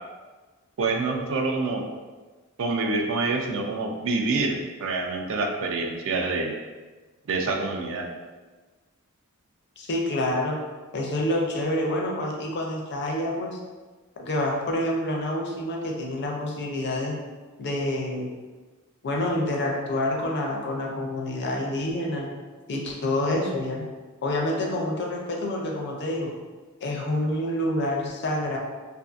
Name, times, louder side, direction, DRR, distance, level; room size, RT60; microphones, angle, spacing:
voice 1, 0.8-1.9 2.6-6.6 7.3-8.1, right 3 dB, 60° right, 3 dB, 0.3 m, -26 dB
voice 2, 9.8-10.6 10.9-13.6 14.2-17.2 17.6-18.3 19.0-22.4 22.7-23.8 24.2-26.3 26.8-28.6, left 1 dB, 50° left, 0 dB, 0.5 m, -27 dB
2.6 x 2.4 x 2.4 m, 1.3 s
head